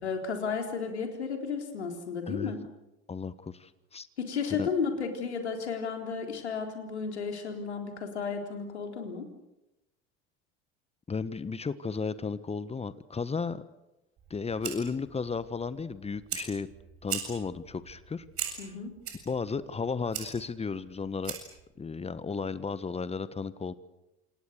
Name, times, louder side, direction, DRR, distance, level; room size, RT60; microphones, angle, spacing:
voice 1, 0.0-2.6 4.2-9.3 18.6-18.9, left 5 dB, 75° left, 4 dB, 4.0 m, -33 dB
voice 2, 3.1-4.1 4.5-4.7 11.1-13.6 14.3-16.7 17.0-18.2 19.2-21.4 21.8-23.7, left 5 dB, 20° left, 15 dB, 1.3 m, -34 dB
Fire, 14.2-21.7, right 9 dB, 45° right, 7.6 m, -41 dB
28.0 x 28.0 x 6.8 m, 0.96 s
figure-of-eight pair, 65°, 33 cm